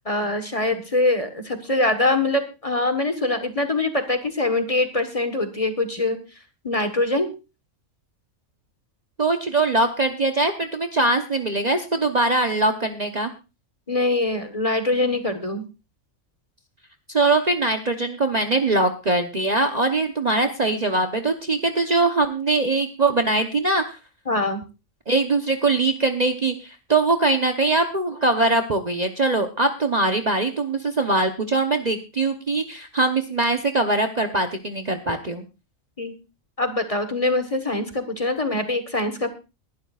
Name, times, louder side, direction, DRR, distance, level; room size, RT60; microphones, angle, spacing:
voice 1, 0.0-6.2 6.6-7.3 13.9-15.6 24.3-24.6 36.0-36.1 36.6-39.3, left 2 dB, 25° left, 8 dB, 1.4 m, -23 dB
voice 2, 9.2-13.3 17.1-24.0 25.1-35.4, right 2 dB, 35° right, 6 dB, 1.0 m, -22 dB
21.0 x 11.5 x 2.4 m, 0.29 s
omnidirectional pair, 1.4 m